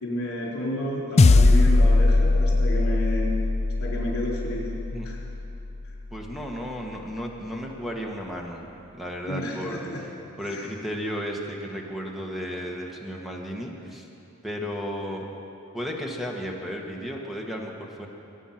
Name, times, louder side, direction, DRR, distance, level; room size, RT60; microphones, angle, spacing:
voice 1, 0.0-3.3 3.8-4.8 5.0-5.2 9.3-10.0 10.4-10.7, left 1 dB, 70° left, -4 dB, 4.2 m, -31 dB
sound 1, 1.2-5.8, left 2 dB, 30° left, 0.4 m, -20 dB
voice 2, 6.1-8.6 8.9-10.1 10.4-14.1 14.4-15.2 15.7-18.1, equal, ahead, -1 dB, 1.5 m, -34 dB
21.0 x 9.2 x 5.9 m, 2.9 s
head